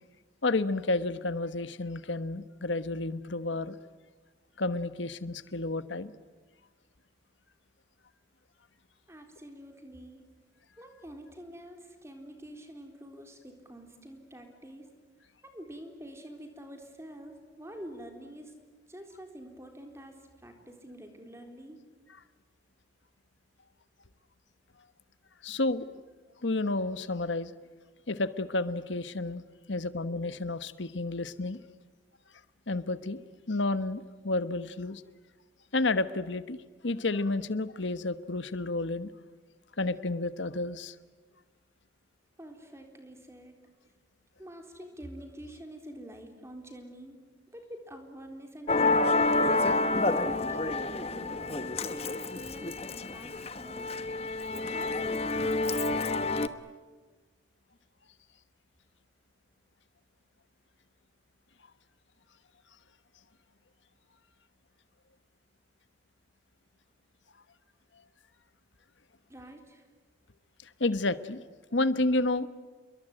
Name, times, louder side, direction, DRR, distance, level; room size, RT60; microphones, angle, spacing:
voice 1, 0.4-3.8 4.6-6.1 25.4-25.9 26.4-27.5 28.1-29.4 29.7-31.6 32.7-35.0 35.7-39.1 39.8-40.9 70.6-71.4 71.7-72.5, left 2 dB, 80° left, 13 dB, 1.2 m, -31 dB
voice 2, 9.1-10.2 10.8-14.9 15.4-18.5 18.9-21.8 42.4-43.6 44.4-47.1 47.5-49.5 49.8-53.9 54.3-56.5 69.3-69.9, equal, 15° right, 4 dB, 3.9 m, -47 dB
Musical instrument, 48.7-56.5, left 2 dB, 30° left, 1.1 m, -28 dB
29.0 x 22.5 x 9.1 m, 1.3 s
head